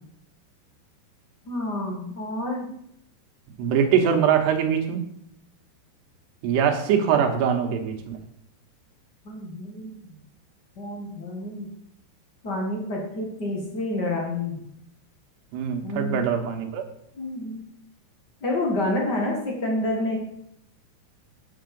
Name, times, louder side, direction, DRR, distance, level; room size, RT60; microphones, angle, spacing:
voice 1, 1.4-2.7 9.2-10.0 10.8-11.7 12.4-14.6 15.8-16.1 17.1-17.6 18.4-20.2, left 1 dB, 55° left, 0 dB, 1.1 m, -28 dB
voice 2, 3.6-5.0 6.4-8.0 15.5-16.8, right 8 dB, 75° right, 5 dB, 3.2 m, -22 dB
8.7 x 7.6 x 5.4 m, 0.72 s
omnidirectional pair, 4.9 m